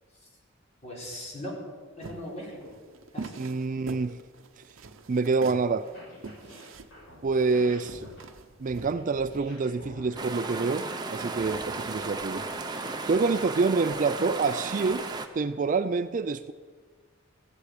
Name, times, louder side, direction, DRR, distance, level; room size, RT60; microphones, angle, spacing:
voice 1, 0.8-1.6 2.0-2.8 3.1-3.5, left 1 dB, 35° left, -4 dB, 4.6 m, -39 dB
sound 1, 2.0-9.5, right 3 dB, 70° right, 0.8 m, -43 dB
voice 2, 3.4-4.2 5.1-5.9 7.2-8.0 8.6-12.4 13.1-15.1 15.3-16.5, right 4 dB, 40° right, 12 dB, 0.4 m, -27 dB
sound 2, 5.8-13.2, equal, 60° left, 6.0 m, -49 dB
sound 3, 10.1-15.3, right 3 dB, 20° right, 0.8 m, -35 dB
15.5 x 8.2 x 8.4 m, 1.5 s
head